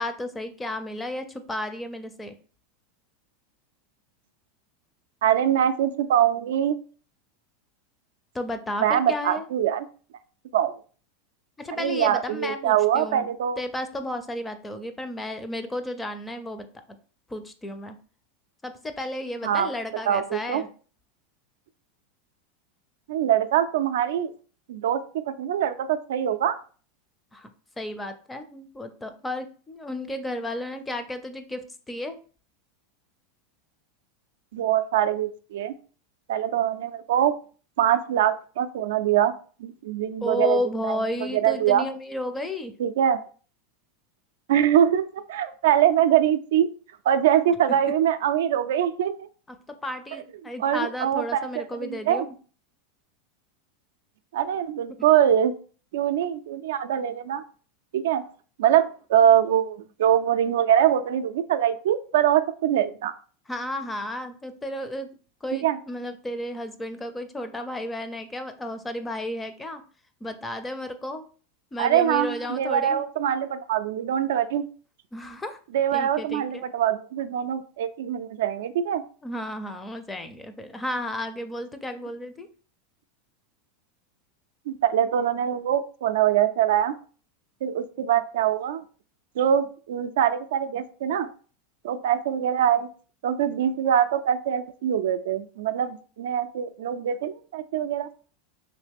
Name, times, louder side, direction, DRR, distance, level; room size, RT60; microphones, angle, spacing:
voice 1, 0.0-2.4 8.3-9.5 11.6-13.3 13.6-16.7 17.3-18.0 18.6-20.7 27.3-27.5 27.8-32.2 40.2-42.7 49.8-52.3 63.5-65.1 65.4-69.8 70.2-71.3 71.7-73.1 75.1-75.6 75.9-76.6 79.2-82.5, left 1 dB, 10° left, 9 dB, 0.4 m, -33 dB
voice 2, 5.2-6.8 8.8-9.9 10.5-10.7 11.8-13.6 19.4-19.7 20.1-20.6 23.1-24.3 24.7-26.6 34.5-35.7 36.3-37.3 37.8-39.3 39.6-40.6 40.8-41.0 41.3-41.9 42.8-43.2 44.5-46.7 47.1-49.3 50.6-51.5 51.8-52.2 54.3-55.5 55.9-57.4 57.9-58.2 58.6-63.1 65.6-65.8 71.8-74.7 75.7-79.0 84.7-86.9 87.6-88.8 89.4-91.3 91.8-92.9 93.2-98.1, right 10 dB, 80° right, 10 dB, 0.3 m, -23 dB
3.2 x 2.8 x 3.4 m, 0.40 s
supercardioid pair, 125°, 0 cm